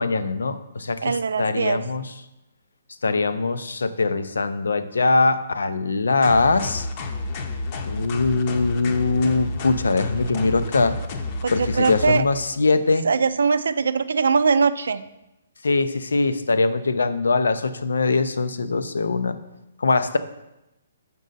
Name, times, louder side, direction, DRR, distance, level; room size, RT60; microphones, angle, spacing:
voice 1, 0.0-2.1 3.0-6.9 7.8-11.0 11.5-13.1 15.6-19.4 19.8-20.2, left 3 dB, 85° left, 12 dB, 0.5 m, -22 dB
voice 2, 1.0-1.8 11.4-12.2 13.0-15.0, right 5 dB, 80° right, 14 dB, 0.4 m, -21 dB
sound 1, 6.2-12.2, left 3 dB, 40° left, 0.7 m, -30 dB
6.3 x 5.3 x 4.0 m, 0.92 s
hypercardioid pair, 145°, 0 cm